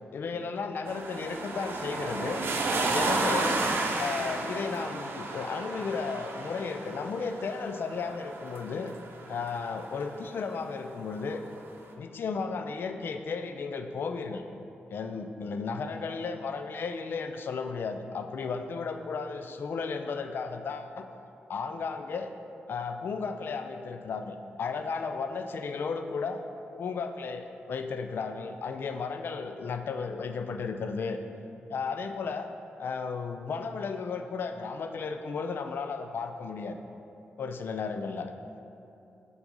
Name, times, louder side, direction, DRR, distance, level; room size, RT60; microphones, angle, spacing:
voice 1, 0.1-2.4 2.9-3.6 4.0-8.9 9.3-11.4 12.0-14.4 14.9-21.0 21.5-22.3 22.7-26.4 26.8-31.2 31.7-32.5 32.8-36.8 37.4-38.3, left 5 dB, 65° left, 7 dB, 0.4 m, -34 dB
sound 1, 0.9-9.9 11.2-11.3, right 2 dB, 70° right, 0.7 m, -32 dB
5.8 x 3.9 x 5.4 m, 2.8 s
cardioid pair, 95°, 4 cm